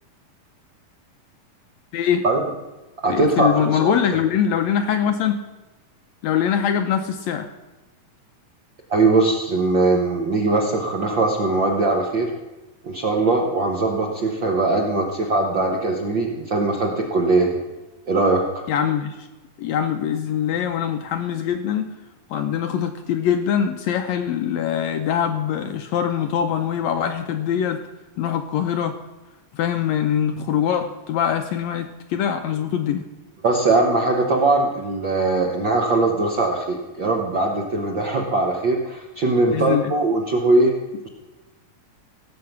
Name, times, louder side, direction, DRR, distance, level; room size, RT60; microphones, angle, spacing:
voice 1, 1.9-2.2 3.1-5.4 6.2-7.5 18.7-19.3 19.6-21.9 22.3-27.8 28.2-28.9 29.5-33.0 39.5-39.9, left 8 dB, 75° left, 7 dB, 1.7 m, -23 dB
voice 2, 3.0-3.9 8.9-12.3 12.8-17.5 18.1-18.4 33.4-40.7, right 2 dB, 60° right, 0 dB, 1.2 m, -20 dB
17.0 x 7.6 x 5.9 m, 1.1 s
omnidirectional pair, 3.7 m